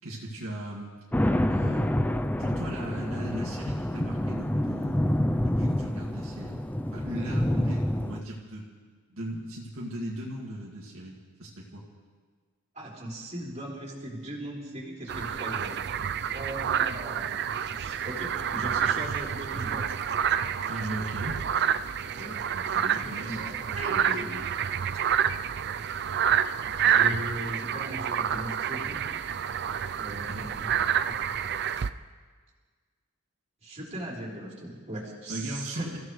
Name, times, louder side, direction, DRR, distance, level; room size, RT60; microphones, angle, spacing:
voice 1, 0.0-1.0 1.4-1.9 2.4-6.6 6.9-8.6 9.1-11.9 20.7-21.4 22.5-23.5 24.1-24.4 30.3-30.5 35.3-36.1, right 1 dB, 70° right, -4 dB, 2.2 m, -38 dB
sound 1, 1.1-8.2, left 1 dB, 5° left, 0.4 m, -27 dB
voice 2, 12.7-15.8 16.3-17.3 17.8-19.9 22.1-22.4 23.0-24.4 24.9-25.0 26.7-29.0 30.0-30.7 31.1-31.2 33.6-36.1, right 1 dB, 30° right, -4 dB, 3.7 m, -38 dB
sound 2, 15.1-31.9, right 8 dB, 50° right, 0.4 m, -28 dB
28.5 x 15.5 x 3.2 m, 1.5 s
head